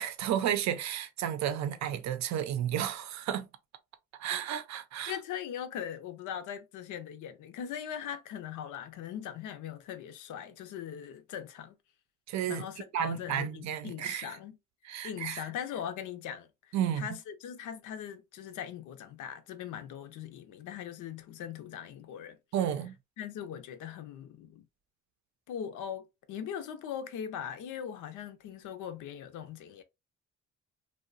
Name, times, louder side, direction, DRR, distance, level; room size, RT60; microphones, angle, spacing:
voice 1, 0.0-3.5 4.2-5.1 12.3-12.6 12.9-14.3 14.8-15.5 16.7-17.1 22.5-22.9, right 10 dB, 65° right, 0.5 m, -32 dB
voice 2, 5.1-11.8 12.5-14.6 15.0-22.4 23.2-24.7 25.5-29.8, left 9 dB, 85° left, 0.6 m, -40 dB
2.9 x 2.1 x 2.4 m
cardioid pair, 90°, 30 cm